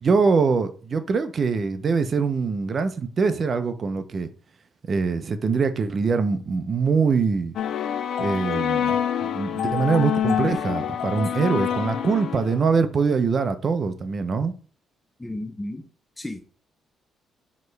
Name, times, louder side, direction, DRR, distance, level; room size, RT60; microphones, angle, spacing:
voice 1, 0.0-4.3 4.9-7.6 8.2-14.5, right 5 dB, 45° right, 0.5 m, -23 dB
sound 1, 7.6-12.8, left 9 dB, 70° left, 0.3 m, -26 dB
voice 2, 15.2-15.8 16.2-16.5, left 1 dB, 10° left, 0.5 m, -34 dB
4.4 x 3.0 x 3.2 m
cardioid pair, 90°, 0 cm